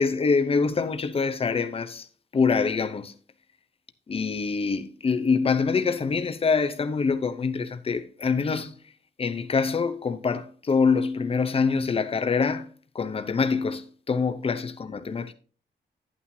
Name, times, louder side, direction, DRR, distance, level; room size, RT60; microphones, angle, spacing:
voice 1, 0.0-2.1 2.3-3.1 4.1-8.8 9.2-12.7 12.9-15.3, left 5 dB, 30° left, 0.8 m, -25 dB
11.0 x 8.8 x 2.8 m
wide cardioid pair, 135°, 18 cm